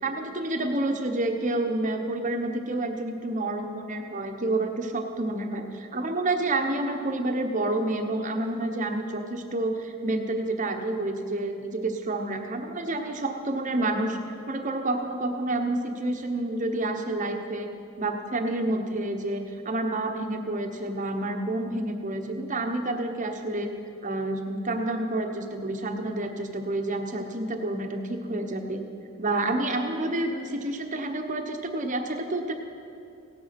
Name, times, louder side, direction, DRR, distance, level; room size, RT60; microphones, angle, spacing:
voice 1, 0.0-14.2 14.5-17.7 18.0-23.7 24.0-28.8 29.2-32.5, right 2 dB, 35° right, 5 dB, 1.0 m, -29 dB
17.0 x 8.3 x 5.8 m, 2.6 s
head